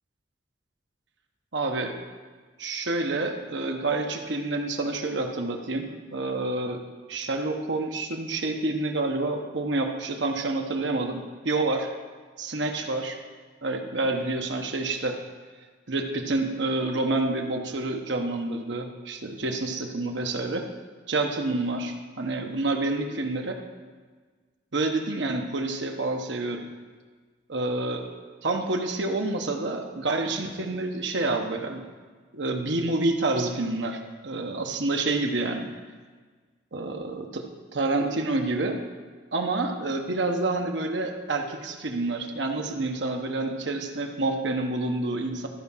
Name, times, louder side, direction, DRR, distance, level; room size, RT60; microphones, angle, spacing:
voice 1, 1.5-2.0 2.6-6.8 7.1-11.9 12.4-13.2 13.6-15.2 15.9-20.7 21.1-23.6 24.7-26.6 27.5-28.1 28.4-31.8 32.3-35.7 36.7-38.8 39.3-45.5, right 2 dB, 70° right, 3 dB, 1.0 m, -28 dB
13.0 x 4.7 x 5.6 m, 1.5 s
head